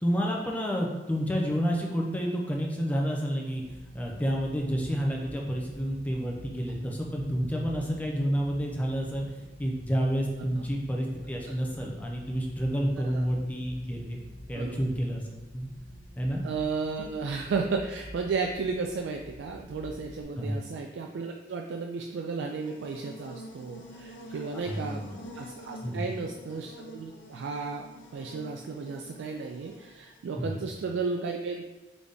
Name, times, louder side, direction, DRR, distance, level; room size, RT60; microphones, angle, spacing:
voice 1, 0.0-3.6 3.9-9.2 9.6-14.2 14.5-15.2 15.5-15.7 16.2-16.4 20.4-20.6 24.5-25.2 25.8-26.0 30.4-30.7, equal, 10° left, -1 dB, 0.6 m, -29 dB
sound 1, 3.5-20.2, equal, 50° left, 0.8 m, -49 dB
voice 2, 16.4-25.0 25.3-27.9 28.1-31.7, right 4 dB, 85° right, 2 dB, 0.3 m, -33 dB
Buzz, 22.2-30.3, equal, 85° left, 0.5 m, -48 dB
4.0 x 3.4 x 3.5 m, 1.1 s
head